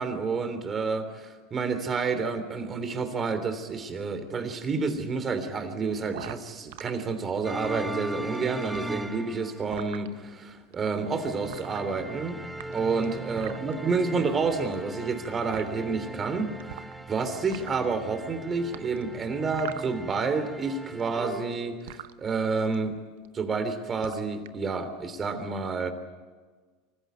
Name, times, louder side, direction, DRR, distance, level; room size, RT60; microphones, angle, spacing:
voice 1, 0.0-12.4 12.7-22.9 23.3-25.9, right 4 dB, 25° right, 9 dB, 3.2 m, -29 dB
sound 1, 6.1-6.9 7.4-8.4 8.6-10.1 10.7-10.9 11.4-12.2 12.5-13.8 14.6-15.2 15.5-15.6 16.6-17.1 17.4-17.9 18.7-20.4 20.6-22.1 22.7-23.0 23.3-23.6 23.9-24.6, right 14 dB, 80° right, 0.9 m, -42 dB
sound 2, 7.4-9.9 11.0-21.6, right 1 dB, 5° right, 1.0 m, -40 dB
25.0 x 15.5 x 9.4 m, 1.4 s
supercardioid pair, 115°, 0 cm